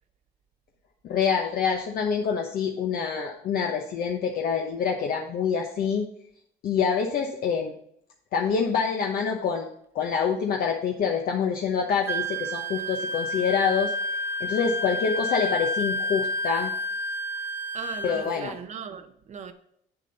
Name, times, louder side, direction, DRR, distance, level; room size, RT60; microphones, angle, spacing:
voice 1, 1.0-6.1 6.6-7.7 8.3-9.7 9.9-13.9 14.4-16.7 18.0-18.5, left 6 dB, 65° left, 1 dB, 1.0 m, -26 dB
Wind instrument woodwind instrument, 12.1-18.3, equal, 15° right, 0.9 m, -30 dB
voice 2, 17.7-19.5, right 6 dB, 45° right, 8 dB, 0.7 m, -38 dB
7.8 x 7.2 x 4.1 m, 0.69 s
cardioid pair, 110°, 17 cm